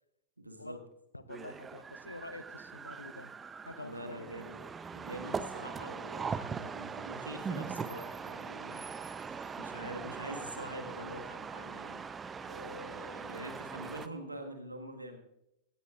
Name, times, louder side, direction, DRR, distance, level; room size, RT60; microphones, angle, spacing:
voice 1, 0.4-0.8 3.8-4.6 4.9-8.9 9.3-12.0 12.4-15.2, right 1 dB, 85° right, 5 dB, 1.6 m, -45 dB
voice 2, 1.1-3.3 3.6-4.4, left 2 dB, 85° left, 14 dB, 0.7 m, -47 dB
sound 1, 1.3-14.1, right 5 dB, 20° right, 0.6 m, -41 dB
18.5 x 16.5 x 2.5 m, 0.86 s
figure-of-eight pair, 90°, 0 cm